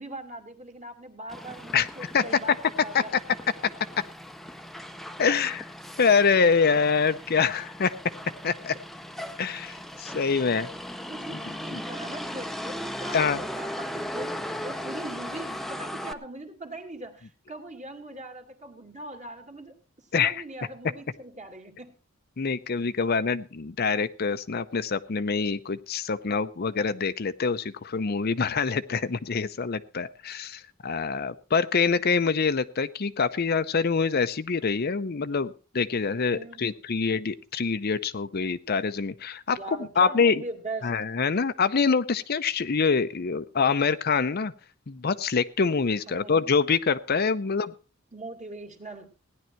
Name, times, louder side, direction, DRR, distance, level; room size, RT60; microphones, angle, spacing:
voice 1, 0.0-3.1 5.3-5.4 10.2-10.4 11.1-21.9 31.8-32.1 36.3-36.6 39.5-41.0 46.1-46.3 48.1-49.1, right 2 dB, 35° right, 5 dB, 2.3 m, -41 dB
Motor vehicle (road), 1.3-16.1, equal, ahead, 0.7 m, -38 dB
voice 2, 5.2-5.6 6.0-7.9 8.4-8.7 9.4-10.7 11.7-11.8 13.1-13.4 20.1-20.3 22.4-40.4 40.8-44.5 44.9-47.7, left 5 dB, 50° left, 12 dB, 0.6 m, -25 dB
17.0 x 10.5 x 4.5 m, 0.34 s
head